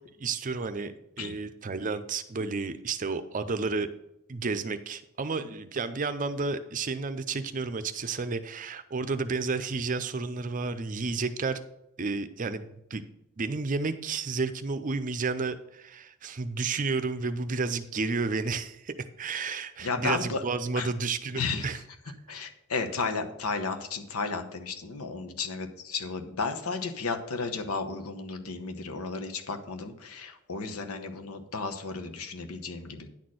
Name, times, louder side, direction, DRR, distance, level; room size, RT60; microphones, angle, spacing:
voice 1, 0.2-3.9 4.3-11.6 12.0-13.0 13.4-21.8, right 4 dB, 35° right, 11 dB, 0.5 m, -31 dB
voice 2, 19.8-20.4 20.7-20.9 21.4-21.8 22.3-33.1, left 4 dB, 90° left, 6 dB, 1.0 m, -33 dB
10.0 x 4.3 x 6.3 m, 0.82 s
head